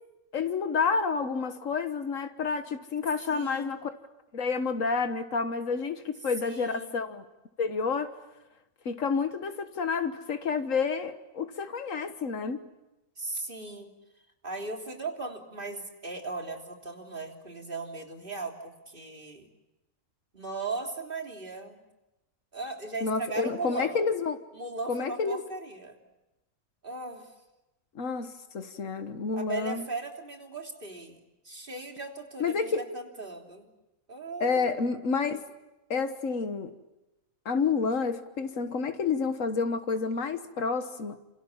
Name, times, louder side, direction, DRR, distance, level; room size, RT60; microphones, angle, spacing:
voice 1, 0.3-3.9 4.3-7.2 7.6-8.2 8.8-12.6 23.0-24.4 24.9-25.4 27.9-29.8 32.4-32.9 34.4-35.5 35.9-36.7 37.4-41.2, left 5 dB, 90° left, 8 dB, 1.7 m, -29 dB
voice 2, 3.3-3.7 6.4-6.9 13.2-13.9 14.4-19.5 20.3-21.8 22.5-24.0 24.5-26.0 26.8-27.3 29.3-33.7 34.1-34.7, right 3 dB, 40° right, 2 dB, 3.5 m, -38 dB
28.5 x 27.5 x 7.3 m, 0.97 s
omnidirectional pair, 1.3 m